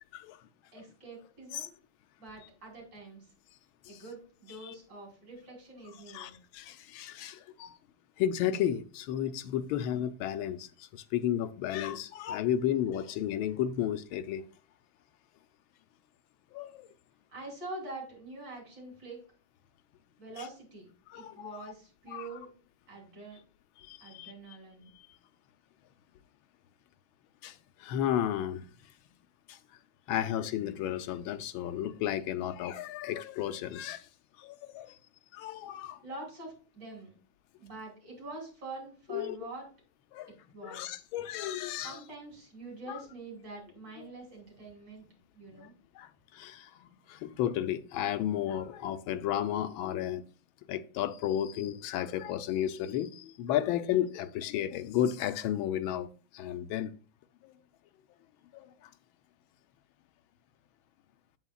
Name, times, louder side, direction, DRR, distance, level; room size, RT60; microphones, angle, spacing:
voice 1, 0.7-1.8 2.2-3.2 3.9-6.4 17.3-19.2 20.2-22.5 22.9-23.4 24.0-24.9 36.0-37.2 37.6-39.6 40.5-41.0 41.8-45.1 45.3-45.7, right 2 dB, 60° right, 4.0 m, -45 dB
voice 2, 6.1-7.8 8.2-14.5 16.5-16.9 21.1-21.7 22.1-22.4 23.8-24.3 24.9-25.1 27.4-28.7 29.5-29.6 30.1-34.1 34.4-35.0 35.3-36.0 39.1-39.4 40.1-40.3 40.6-42.0 42.9-43.0 44.0-44.1 45.6-45.7 45.9-50.2 50.7-56.9 57.4-57.5 58.5-58.9, left 11 dB, 90° left, 1.4 m, -33 dB
8.1 x 8.0 x 2.3 m
omnidirectional pair, 2.2 m